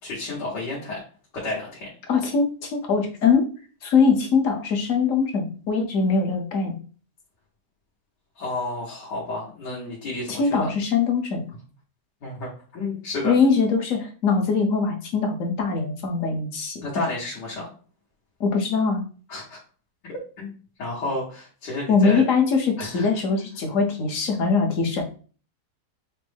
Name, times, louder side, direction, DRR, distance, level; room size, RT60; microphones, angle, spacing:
voice 1, 0.0-1.0 1.3-1.9 8.4-10.7 12.2-13.3 16.8-17.7 19.3-19.6 20.0-20.5 20.8-22.3 22.8-23.1, left 2 dB, 80° left, -6 dB, 2.0 m, -31 dB
voice 2, 2.1-3.5 3.8-6.8 10.3-11.5 13.2-16.8 18.4-19.0 21.9-25.0, left 5 dB, 55° left, 3 dB, 1.1 m, -22 dB
6.0 x 2.1 x 3.4 m, 0.38 s
omnidirectional pair, 1.8 m